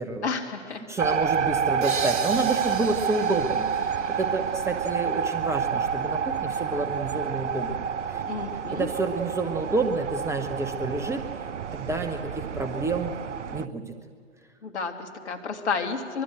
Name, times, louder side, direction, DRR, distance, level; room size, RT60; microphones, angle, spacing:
voice 1, 0.2-0.8 8.2-8.9 14.6-16.2, left 5 dB, 60° left, 5 dB, 2.6 m, -31 dB
voice 2, 0.9-8.2 8.7-11.2 11.7-13.1 13.5-13.9, right 3 dB, 5° right, 7 dB, 0.9 m, -29 dB
sound 1, 1.0-13.7, right 7 dB, 70° right, 0.7 m, -29 dB
sound 2, 1.8-5.4, right 5 dB, 40° right, 1.6 m, -37 dB
24.0 x 22.5 x 7.9 m, 2.1 s
figure-of-eight pair, 110°, 38 cm